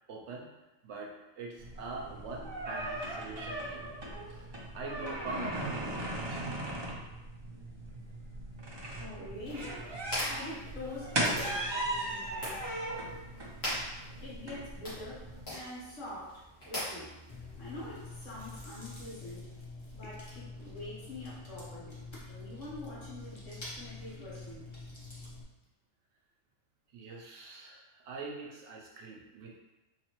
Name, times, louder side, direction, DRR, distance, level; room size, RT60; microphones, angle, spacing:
voice 1, 0.1-0.5 0.8-6.4 17.4-17.6 26.9-29.6, right 3 dB, 65° right, 0 dB, 0.8 m, -44 dB
sound 1, 1.6-15.4, right 1 dB, 40° right, 0.3 m, -38 dB
voice 2, 8.9-9.8 10.1-12.7 14.2-17.1 17.6-19.5 19.9-22.0 22.3-24.7, left 1 dB, 70° left, -7 dB, 1.6 m, -45 dB
sound 2, 9.4-18.4, left 1 dB, 50° left, 1.7 m, -42 dB
Chewing mastication, 17.3-25.4, left 2 dB, 30° left, 0.7 m, -46 dB
4.0 x 2.9 x 3.0 m, 1.0 s
omnidirectional pair, 1.4 m